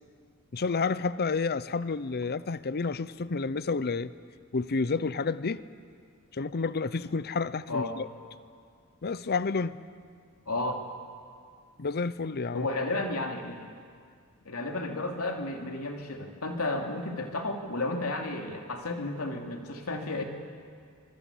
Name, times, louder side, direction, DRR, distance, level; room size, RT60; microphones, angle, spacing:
voice 1, 0.5-4.1 4.5-5.6 6.3-8.1 9.0-9.8 11.8-12.7, left 4 dB, 45° left, 16 dB, 0.6 m, -30 dB
voice 2, 10.5-10.8 12.5-13.6 14.4-20.2, left 2 dB, 80° left, 2 dB, 3.0 m, -32 dB
25.0 x 21.0 x 8.5 m, 2.1 s
head